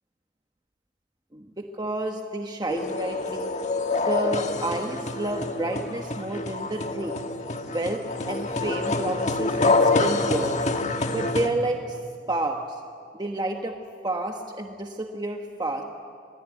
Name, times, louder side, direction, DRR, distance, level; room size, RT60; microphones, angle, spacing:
voice 1, 1.3-3.5 4.0-7.2 7.7-10.5 11.1-12.0 12.3-12.8 13.1-13.8 14.0-15.8, right 2 dB, 20° right, 3 dB, 1.2 m, -30 dB
sound 1, 2.7-11.5, left 3 dB, 35° left, 1.5 m, -26 dB
26.5 x 21.5 x 9.2 m, 2.3 s
head